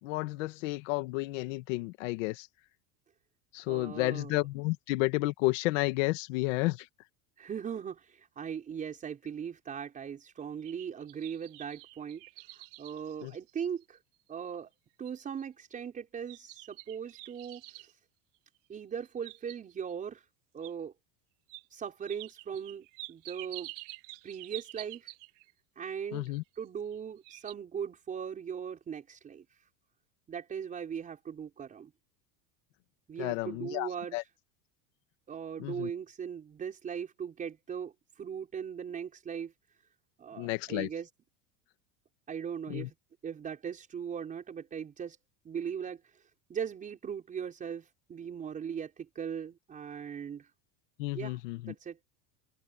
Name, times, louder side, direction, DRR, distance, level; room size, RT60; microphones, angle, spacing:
voice 1, 0.0-2.5 3.5-6.9 13.2-13.3 26.1-26.4 33.2-34.2 35.6-35.9 40.4-40.9 42.7-42.9 51.0-51.7, left 21 dB, 65° left, 2.0 m, -31 dB
voice 2, 3.7-4.4 7.4-12.2 12.5-14.0 14.3-14.7 15.0-17.9 18.7-20.3 20.5-20.9 21.7-23.7 24.2-25.1 25.8-29.5 30.3-31.9 33.1-34.3 35.3-39.5 40.2-41.1 42.3-42.9 43.2-45.2 45.5-50.5 51.1-51.4 51.7-52.0, right 7 dB, 20° right, 5.2 m, -39 dB
sound 1, 10.4-14.0 14.5-14.6 15.1-15.4 16.3-17.9 18.9-19.9 20.6-20.7 21.5-21.6 22.1-25.5 26.5-27.0 27.2-27.5, right 24 dB, 60° right, 2.8 m, -48 dB
open air
cardioid pair, 175°, 40 cm